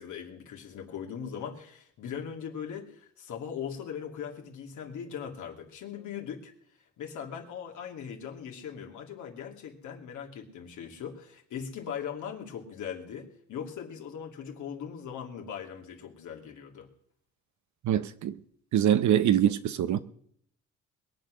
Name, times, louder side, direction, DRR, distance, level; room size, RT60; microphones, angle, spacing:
voice 1, 0.0-6.5 7.0-16.9, left 8 dB, 75° left, 2.7 m, -40 dB
voice 2, 17.8-18.4 18.7-20.0, right 10 dB, 70° right, 1.0 m, -24 dB
22.0 x 8.1 x 6.4 m
cardioid pair, 90°, 30 cm